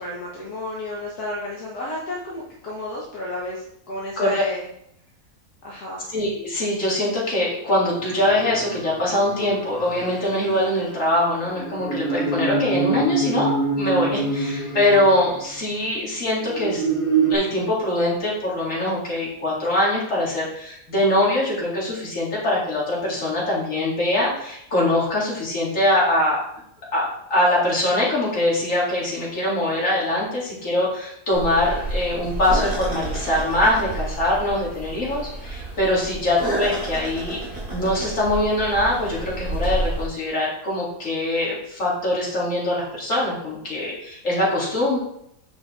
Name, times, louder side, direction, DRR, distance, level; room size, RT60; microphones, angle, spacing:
voice 1, 0.0-4.7 5.6-6.1, left 1 dB, 70° left, -5 dB, 1.6 m, -32 dB
voice 2, 6.1-16.9 17.3-26.4 26.9-37.4 37.7-45.0, left 1 dB, 50° left, -5 dB, 2.4 m, -23 dB
sound 1, 7.9-15.7 16.4-17.4, right 4 dB, 15° left, 0.6 m, -26 dB
sound 2, 31.3-40.1, right 1 dB, 35° right, 2.1 m, -30 dB
6.7 x 5.0 x 3.6 m, 0.75 s
omnidirectional pair, 1.7 m